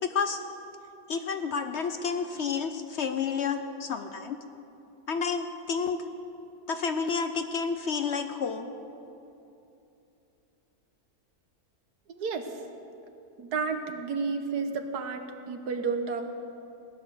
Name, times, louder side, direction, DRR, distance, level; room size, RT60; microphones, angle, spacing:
voice 1, 0.0-0.4 1.1-4.4 5.1-6.0 6.7-8.7, left 5 dB, 60° left, 8 dB, 0.7 m, -30 dB
voice 2, 12.1-12.4 13.4-16.2, right 5 dB, 90° right, 6 dB, 1.6 m, -31 dB
17.0 x 10.5 x 7.0 m, 2.8 s
omnidirectional pair, 1.6 m